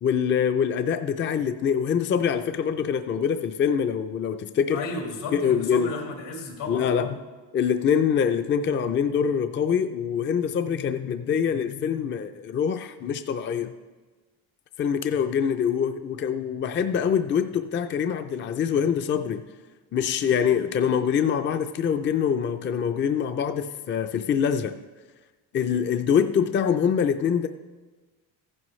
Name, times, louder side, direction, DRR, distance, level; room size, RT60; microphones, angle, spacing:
voice 1, 0.0-4.8 5.3-5.9 6.7-7.2 7.5-13.7 14.8-19.4 19.9-24.8 25.5-27.5, left 7 dB, 30° left, 8 dB, 0.4 m, -24 dB
voice 2, 4.7-7.1, left 3 dB, 85° left, 1 dB, 2.6 m, -34 dB
14.5 x 11.0 x 3.2 m, 1.3 s
cardioid pair, 120°, 40 cm